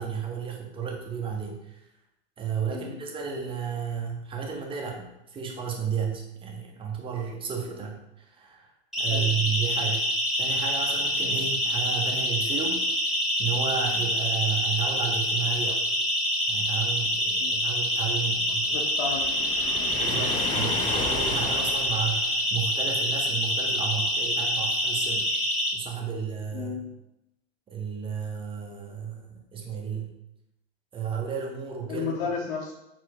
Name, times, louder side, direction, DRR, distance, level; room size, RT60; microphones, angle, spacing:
voice 1, 0.0-1.8 2.4-8.7 9.0-10.0 10.4-12.8 13.4-15.9 16.5-18.7 19.9-25.4 25.7-26.8 27.7-30.1 30.9-32.1, right 7 dB, 15° right, 1 dB, 0.7 m, -32 dB
Siren, 8.9-25.7, equal, ahead, 1.2 m, -26 dB
voice 2, 18.6-19.3 19.8-19.9 26.5-26.8 31.9-32.7, left 5 dB, 55° left, -2 dB, 0.7 m, -33 dB
Waves surf, 19.0-22.5, left 4 dB, 15° left, 0.4 m, -34 dB
4.4 x 2.1 x 4.1 m, 0.87 s
hypercardioid pair, 110°, 33 cm